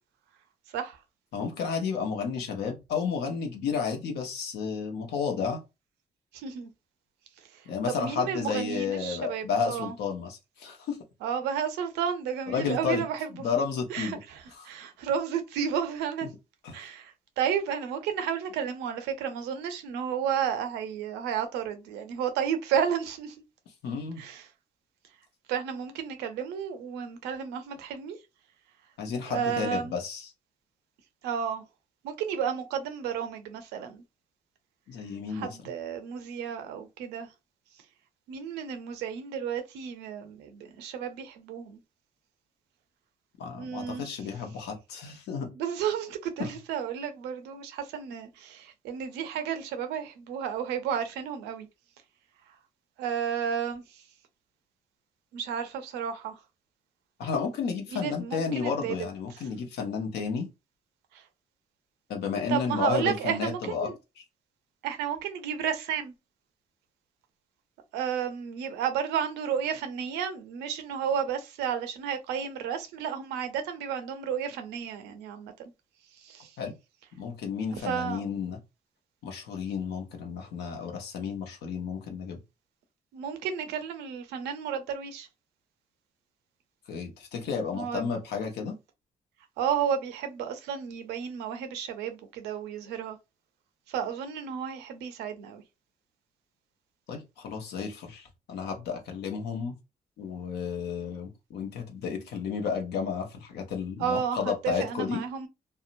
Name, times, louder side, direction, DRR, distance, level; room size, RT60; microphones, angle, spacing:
voice 1, 1.3-5.6 7.7-11.0 12.5-13.0 13.4-14.2 14.5-14.7 16.6-16.8 23.8-24.2 29.0-30.3 34.9-35.6 43.4-45.5 46.4-46.5 57.2-60.5 62.1-63.9 64.2-64.3 76.6-76.7 77.2-78.6 79.2-82.4 86.9-88.7 97.1-99.8 100.2-105.2, left 6 dB, 80° left, 0.8 m, -32 dB
voice 2, 6.3-6.7 7.9-9.9 11.2-13.6 13.9-16.3 16.7-23.3 24.2-24.5 25.5-28.2 29.3-29.9 31.2-31.6 32.0-34.0 35.3-37.3 38.3-41.8 43.6-44.1 45.5-51.7 53.0-53.8 55.3-56.4 57.9-59.1 61.1-61.2 62.5-63.9 64.8-66.1 67.9-75.5 76.2-76.5 77.9-78.2 83.1-85.3 87.5-88.1 89.6-93.2 93.9-95.6 104.0-105.5, right 8 dB, 90° right, 0.5 m, -32 dB
2.7 x 2.0 x 2.5 m
supercardioid pair, 45°, 17 cm